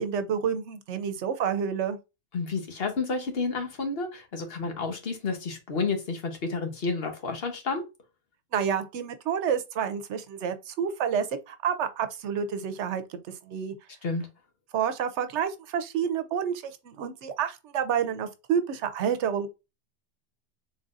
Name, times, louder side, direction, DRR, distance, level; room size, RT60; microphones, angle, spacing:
voice 1, 0.0-2.0 8.5-13.2 13.4-13.7 14.7-19.5, right 7 dB, 85° right, 0.9 m, -29 dB
voice 2, 2.3-7.8 14.0-14.2, left 4 dB, 60° left, 1.2 m, -30 dB
3.9 x 3.9 x 2.4 m
omnidirectional pair, 1.2 m